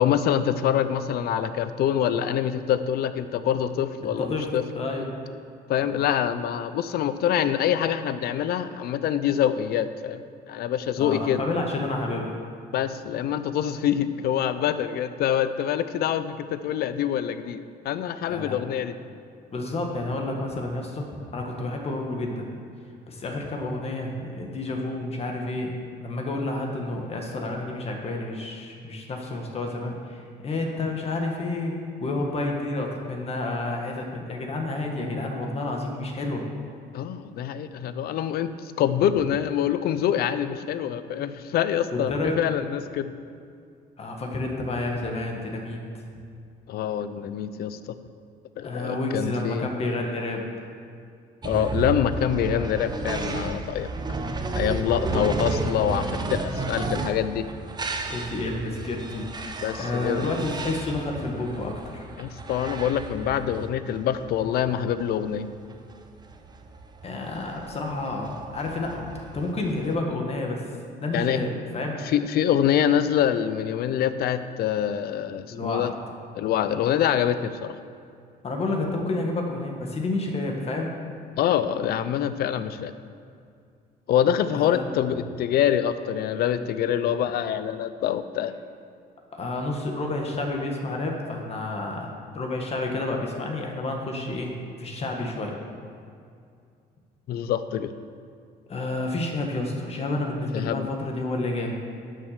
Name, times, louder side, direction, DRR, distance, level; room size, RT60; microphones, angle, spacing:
voice 1, 0.0-4.6 5.7-10.2 10.5-11.4 12.7-18.9 36.9-43.1 46.7-47.9 48.6-49.7 51.4-53.9 54.5-57.5 59.6-60.3 62.2-65.5 71.1-71.4 72.0-75.9 76.3-77.8 81.4-82.9 84.1-88.5 97.3-97.9 100.5-100.9, left 10 dB, 65° left, 12 dB, 0.6 m, -25 dB
voice 2, 4.7-5.1 11.0-12.4 18.3-18.6 19.5-22.5 23.1-25.7 26.0-36.4 41.9-42.4 44.0-46.0 48.6-50.5 55.1-55.3 58.1-59.2 59.8-62.1 67.0-69.0 69.3-70.6 71.0-72.0 75.5-75.9 78.4-80.9 84.5-84.8 85.1-85.2 89.3-94.5 94.8-95.6 98.7-101.8, left 2 dB, 35° left, 1 dB, 1.6 m, -30 dB
sound 1, 51.4-70.0, right 3 dB, 25° right, 0.9 m, -33 dB
11.0 x 6.2 x 6.6 m, 2.3 s
cardioid pair, 110°, 17 cm